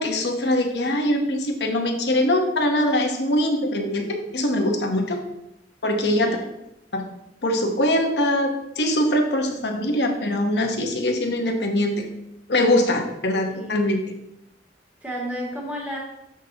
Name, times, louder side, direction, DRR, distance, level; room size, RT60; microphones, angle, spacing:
voice 1, 0.0-5.2 5.8-6.4 6.9-7.0 7.4-12.1 12.5-14.0, left 1 dB, 65° left, 3 dB, 1.0 m, -22 dB
voice 2, 6.1-6.5 13.5-13.8 15.0-16.0, equal, 10° right, -4 dB, 2.1 m, -32 dB
7.2 x 6.4 x 2.8 m, 0.85 s
head